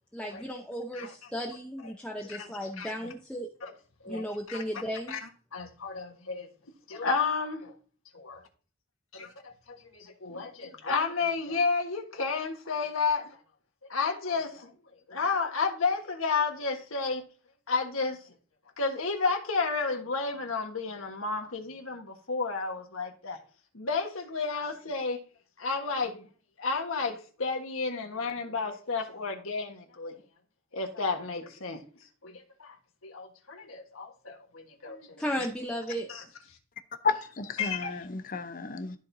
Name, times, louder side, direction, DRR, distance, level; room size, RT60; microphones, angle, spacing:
voice 1, 0.1-3.5 4.1-5.2 35.2-36.1, equal, 5° left, 0.7 m, -35 dB
voice 2, 2.3-2.9 3.6-3.7 4.0-4.6 5.1-5.2 5.5-6.5 6.9-7.7 8.1-8.4 9.1-13.3 13.9-14.7 15.1-17.2 17.7-18.2 18.8-23.4 23.7-25.2 25.6-26.3 26.6-30.2 30.7-31.8 32.2-32.8 33.0-35.5 36.1-36.2 37.6-38.0, left 4 dB, 85° left, 1.4 m, -32 dB
voice 3, 37.0-39.0, left 4 dB, 40° left, 0.7 m, -32 dB
13.0 x 4.4 x 2.7 m
head